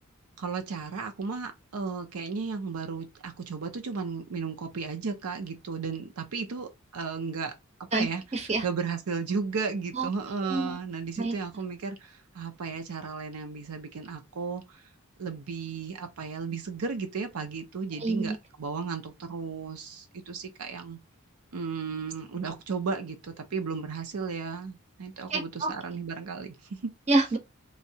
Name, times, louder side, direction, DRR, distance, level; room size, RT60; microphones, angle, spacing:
voice 1, 0.4-7.5 7.8-8.2 8.6-14.8 15.2-21.0 21.5-26.9, right 5 dB, 75° right, 0.6 m, -34 dB
voice 2, 8.3-8.6 9.9-10.1 10.5-10.8 11.2-11.3 18.0-18.3 25.3-25.7 27.1-27.4, right 2 dB, 30° right, 0.7 m, -26 dB
3.1 x 2.7 x 2.7 m
head